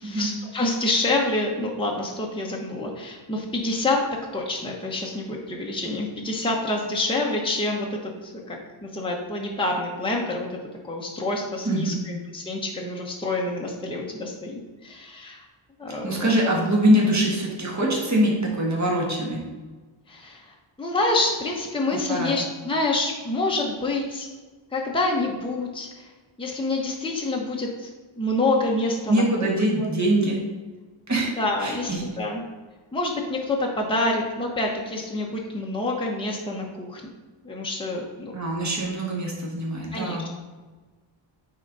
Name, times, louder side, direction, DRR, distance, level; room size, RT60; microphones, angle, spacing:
voice 1, 0.0-4.1 4.3-10.6 10.8-15.4 15.8-16.3 20.1-24.3 24.7-26.1 26.4-27.9 28.2-29.9 31.4-32.4 32.9-37.0 37.4-38.4 39.9-40.2, left 2 dB, 10° left, -1 dB, 0.9 m, -27 dB
voice 2, 11.6-12.0 15.9-19.4 22.1-22.3 29.1-30.4 31.1-31.3 31.6-32.0 38.3-40.3, right 1 dB, 35° right, -2 dB, 1.7 m, -23 dB
8.9 x 3.8 x 4.0 m, 1.3 s
wide cardioid pair, 95°, 50 cm